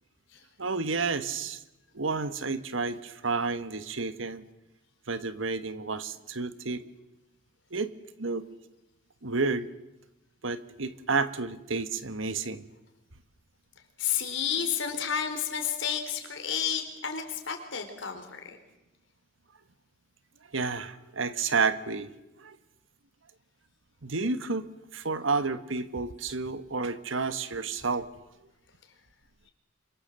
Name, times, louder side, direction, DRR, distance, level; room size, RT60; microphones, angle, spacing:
voice 1, 0.6-1.6 1.9-4.4 5.1-6.9 7.7-7.9 8.2-8.5 9.2-9.7 10.4-12.6 20.5-22.1 22.4-22.6 24.0-24.7 24.9-28.1, right 4 dB, 85° right, 12 dB, 1.5 m, -30 dB
voice 2, 14.0-18.6, left 8 dB, 70° left, 5 dB, 4.6 m, -31 dB
27.5 x 25.0 x 7.7 m, 0.98 s
head